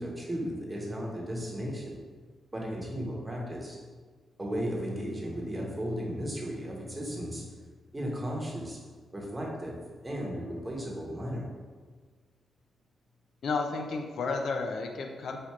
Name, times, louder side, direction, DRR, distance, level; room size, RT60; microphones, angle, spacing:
voice 1, 0.0-2.0 2.5-3.8 4.4-7.4 7.9-8.8 9.1-9.7 10.0-11.4, equal, 15° right, -2 dB, 1.0 m, -35 dB
voice 2, 13.4-15.4, left 4 dB, 75° left, 3 dB, 0.5 m, -32 dB
4.3 x 2.5 x 4.6 m, 1.5 s
wide cardioid pair, 120°, 0 cm